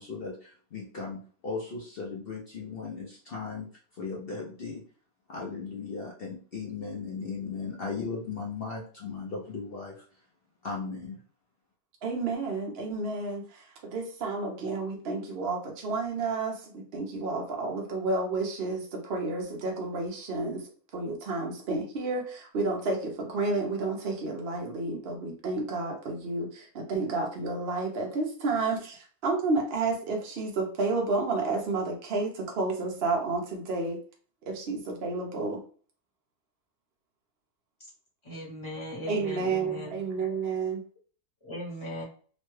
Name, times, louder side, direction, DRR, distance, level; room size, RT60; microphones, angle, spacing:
voice 1, 0.0-4.8 5.3-10.2 10.6-11.2, left 4 dB, 60° left, -2 dB, 0.6 m, -37 dB
voice 2, 12.0-20.6 20.9-34.0 34.5-35.6 39.1-40.8, right 3 dB, 55° right, 1 dB, 0.7 m, -31 dB
voice 3, 38.2-40.0 41.4-42.0, left 1 dB, 20° left, -4 dB, 0.9 m, -38 dB
3.0 x 2.2 x 3.1 m, 0.43 s
omnidirectional pair, 1.6 m